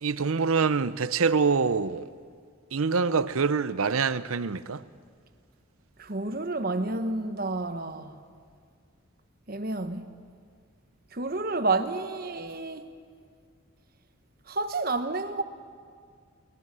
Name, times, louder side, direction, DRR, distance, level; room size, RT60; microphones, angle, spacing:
voice 1, 0.0-2.1 2.7-4.8, right 5 dB, 85° right, 0.7 m, -25 dB
voice 2, 6.0-8.2 9.5-10.1 11.1-12.9 14.5-15.4, right 3 dB, 45° right, 1.2 m, -30 dB
21.5 x 20.0 x 7.6 m
head